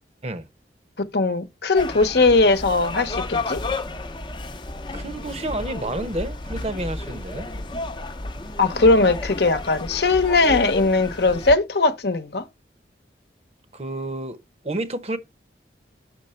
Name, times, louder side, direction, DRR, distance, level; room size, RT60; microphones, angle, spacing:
voice 1, 1.1-3.6 8.6-12.4, left 3 dB, 65° left, 0.9 m, -19 dB
sound 1, 1.7-11.6, left 2 dB, 25° left, 0.6 m, -32 dB
voice 2, 4.9-7.5 13.7-14.4 14.6-15.2, right 1 dB, 35° right, 0.8 m, -30 dB
6.9 x 5.8 x 4.3 m
head